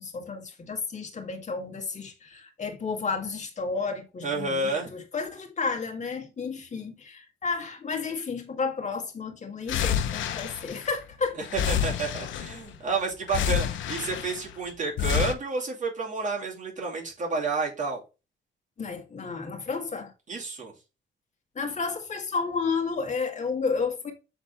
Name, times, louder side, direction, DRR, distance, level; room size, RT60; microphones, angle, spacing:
voice 1, 0.0-11.5 18.8-20.1 21.6-24.1, left 4 dB, 35° left, 1.9 m, -32 dB
voice 2, 4.2-4.9 11.5-18.0 20.3-20.7, right 3 dB, 40° right, 2.7 m, -30 dB
sound 1, 9.7-11.1 11.4-12.8 13.3-14.5 15.0-15.3, left 9 dB, 75° left, 0.8 m, -28 dB
7.3 x 3.9 x 3.4 m
cardioid pair, 90°, 20 cm